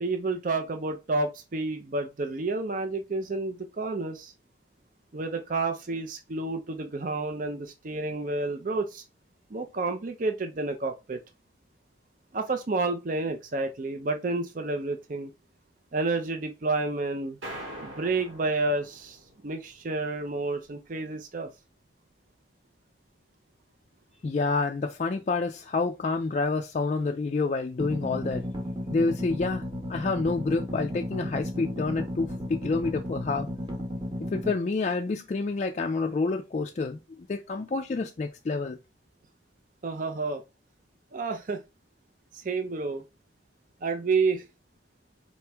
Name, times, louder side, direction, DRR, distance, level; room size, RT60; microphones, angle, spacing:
voice 1, 0.0-4.3 5.1-9.0 9.5-11.2 12.3-15.3 15.9-17.4 17.8-19.2 19.4-21.5 39.8-40.4 41.1-41.6 42.3-43.0 43.8-44.5, right 3 dB, 45° right, 0.5 m, -30 dB
sound 1, 17.4-19.8, right 1 dB, 85° right, 1.9 m, -43 dB
voice 2, 24.2-28.5 28.9-29.6 29.9-33.5 34.2-38.8, left 3 dB, 35° left, 0.3 m, -28 dB
sound 2, 27.8-34.5, left 1 dB, 25° right, 0.9 m, -34 dB
4.1 x 3.0 x 3.3 m
head